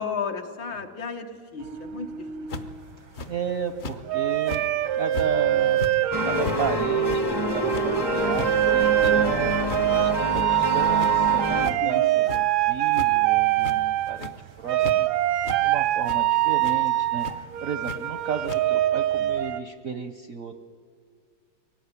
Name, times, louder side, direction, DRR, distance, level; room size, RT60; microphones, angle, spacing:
voice 1, 0.0-2.1 11.6-12.1, left 5 dB, 65° left, 5 dB, 2.0 m, -33 dB
sound 1, 1.6-2.8 4.1-14.3 14.7-19.6, right 13 dB, 85° right, 1.6 m, -24 dB
sound 2, 2.5-2.8 3.1-3.3 3.8-4.0 4.4-4.7 5.1-5.3 5.7-5.9 6.4-6.6 7.0-7.2 7.6-7.9 8.3-8.5 8.9-9.2 9.6-9.8 10.2-10.7 11.0-11.1 11.6-11.7 12.3-12.4 12.9-13.1 13.5-13.8 14.1-14.4 14.8-15.0 15.4-15.6 16.0-16.2 16.6-16.7 17.2-17.3 17.8-18.0 18.4-18.6, left 3 dB, 45° left, 1.0 m, -35 dB
voice 2, 3.3-4.6 4.9-5.8 6.2-9.5 10.0-14.3 14.6-20.5, right 7 dB, 65° right, 9 dB, 0.8 m, -33 dB
sound 3, 6.1-11.7, left 2 dB, 20° left, 0.6 m, -27 dB
23.5 x 18.0 x 9.6 m, 2.1 s
omnidirectional pair, 2.2 m